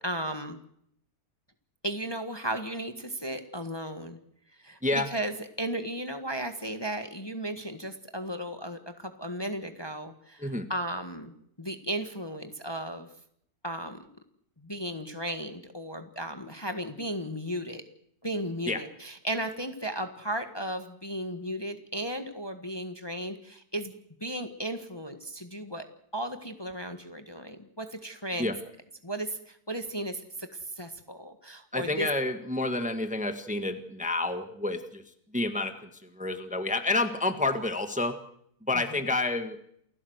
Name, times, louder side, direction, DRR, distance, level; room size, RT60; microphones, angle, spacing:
voice 1, 0.0-0.6 1.8-4.2 4.6-13.1 13.6-14.1 14.6-17.8 18.2-23.9 24.2-25.9 26.1-28.5 29.0-32.1 38.7-38.8, right 1 dB, 15° left, 7 dB, 1.6 m, -35 dB
voice 2, 31.7-35.0 35.3-35.9 36.2-38.2 38.7-39.6, left 2 dB, 5° right, 8 dB, 1.6 m, -29 dB
29.0 x 16.0 x 8.0 m, 0.71 s
omnidirectional pair, 1.7 m